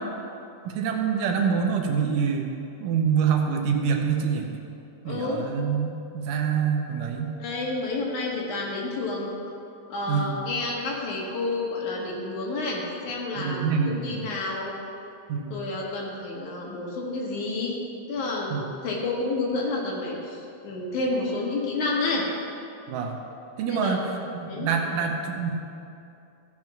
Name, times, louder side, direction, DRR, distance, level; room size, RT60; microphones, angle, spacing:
voice 1, 0.6-2.5 2.8-4.5 5.1-7.4 10.1-10.3 13.4-14.3 15.3-15.5 18.5-18.6 22.9-23.2 23.6-25.5, right 6 dB, 75° right, 3 dB, 2.4 m, -26 dB
voice 2, 5.0-5.4 7.4-9.4 9.9-14.7 15.5-17.8 18.1-20.4 20.6-22.2 23.7-24.0 24.5-24.7, left 3 dB, 65° left, -3 dB, 2.9 m, -29 dB
15.0 x 6.2 x 6.0 m, 2.7 s
omnidirectional pair, 3.9 m